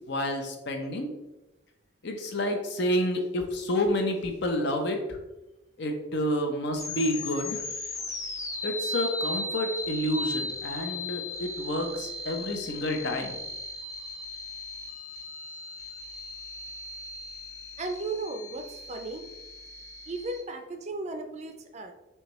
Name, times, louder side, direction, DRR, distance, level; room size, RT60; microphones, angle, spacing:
voice 1, 0.1-1.1 2.0-5.2 5.8-7.6 8.6-13.4, left 1 dB, 65° left, 4 dB, 0.7 m, -29 dB
sound 1, 6.8-20.4, left 2 dB, 15° left, 0.5 m, -37 dB
voice 2, 17.8-19.3 20.1-21.9, right 3 dB, 35° right, 6 dB, 0.4 m, -35 dB
5.5 x 2.3 x 3.0 m, 0.99 s
head